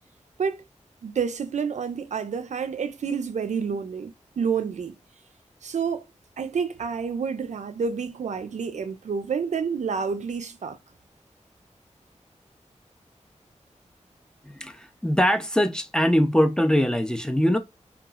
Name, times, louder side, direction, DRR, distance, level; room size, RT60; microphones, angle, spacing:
voice 1, 1.0-4.9 5.6-6.0 6.4-10.8, right 6 dB, 75° right, 0.4 m, -29 dB
voice 2, 14.5-17.6, equal, 5° left, 0.3 m, -22 dB
2.9 x 2.3 x 2.2 m
wide cardioid pair, 100°, 12 cm